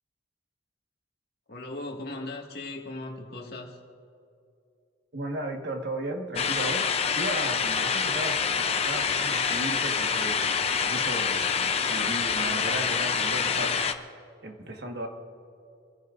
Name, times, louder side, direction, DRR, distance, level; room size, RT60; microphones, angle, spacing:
voice 1, 1.5-3.8, left 2 dB, 50° left, 0 dB, 2.0 m, -38 dB
voice 2, 5.1-6.9 7.1-15.1, right 1 dB, 55° right, 2 dB, 1.6 m, -35 dB
sound 1, 6.4-13.9, left 6 dB, 30° left, 0.6 m, -26 dB
26.5 x 16.0 x 2.6 m, 2.6 s
head